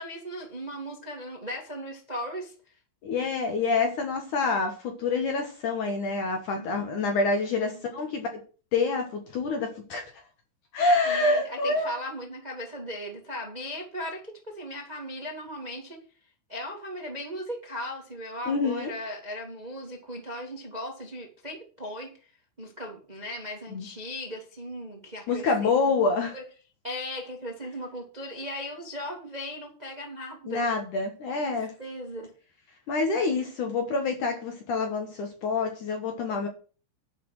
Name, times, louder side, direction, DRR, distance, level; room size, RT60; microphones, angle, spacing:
voice 1, 0.0-2.5 6.5-7.1 7.6-7.8 10.8-16.0 16.5-22.3 22.6-25.9 26.3-26.4 26.8-30.7 31.4-32.3, equal, 30° right, 1 dB, 0.7 m, -38 dB
voice 2, 3.0-8.4 8.7-10.1 10.7-12.0 18.5-18.9 23.7-23.9 25.3-26.3 30.5-31.7 32.9-36.5, left 3 dB, 65° left, 4 dB, 2.0 m, -27 dB
11.0 x 5.9 x 6.2 m, 0.37 s
omnidirectional pair, 5.4 m